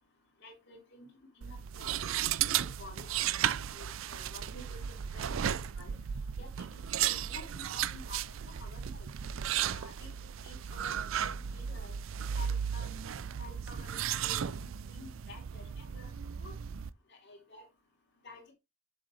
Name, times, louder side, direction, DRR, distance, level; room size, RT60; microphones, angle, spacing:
voice 1, 0.4-1.1 1.4-2.2 2.8-6.0 6.4-9.1 9.7-10.1 10.4-11.9 12.4-12.9 13.4-16.1 16.4-16.5 17.1-17.6 18.2-18.5, left 2 dB, 55° left, 3.3 m, -51 dB
sound 1, 1.4-16.9, right 9 dB, 70° right, 0.4 m, -35 dB
7.8 x 6.7 x 3.2 m
head